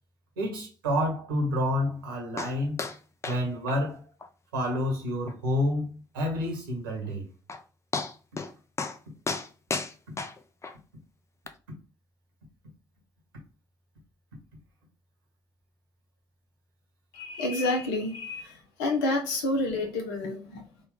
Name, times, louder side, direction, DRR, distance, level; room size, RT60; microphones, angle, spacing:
voice 1, 0.4-2.9 3.2-4.0 4.5-7.3 10.1-10.2, left 1 dB, 80° right, 1.1 m, -29 dB
sound 1, 2.4-2.5 2.8-3.0 3.2-3.4 3.7-3.8 4.2-4.3 4.7-4.8 5.3-5.4 7.1-7.2 7.5-7.6 7.9-8.5 8.8-9.0 9.3-10.7 11.5-11.6, left 4 dB, 25° left, 0.5 m, -33 dB
voice 2, 17.1-18.5 18.8-20.9, left 2 dB, 70° left, 0.7 m, -29 dB
3.9 x 2.3 x 3.5 m
figure-of-eight pair, 45°, 11 cm